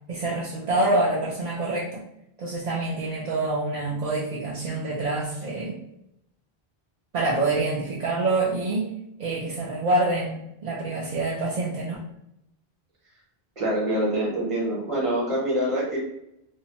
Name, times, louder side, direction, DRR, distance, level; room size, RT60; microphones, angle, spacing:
voice 1, 0.1-2.0 2.4-5.8 7.1-8.9 9.2-12.0, right 2 dB, 55° right, -6 dB, 0.5 m, -26 dB
voice 2, 13.6-16.0, right 1 dB, 35° right, -4 dB, 1.0 m, -25 dB
2.7 x 2.1 x 2.8 m, 0.82 s
omnidirectional pair, 1.1 m